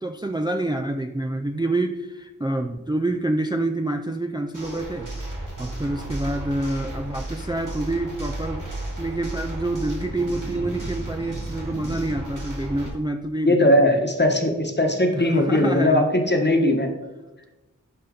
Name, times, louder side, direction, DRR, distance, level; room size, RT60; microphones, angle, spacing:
voice 1, 0.0-5.1 5.6-8.7 9.0-13.8 15.1-16.1, right 2 dB, 15° right, 5 dB, 0.4 m, -27 dB
sound 1, 4.5-12.9, right 1 dB, 70° right, 2.7 m, -33 dB
voice 2, 13.4-16.9, left 1 dB, 35° left, 3 dB, 1.2 m, -19 dB
11.5 x 4.3 x 3.9 m, 1.1 s
wide cardioid pair, 45°, 32 cm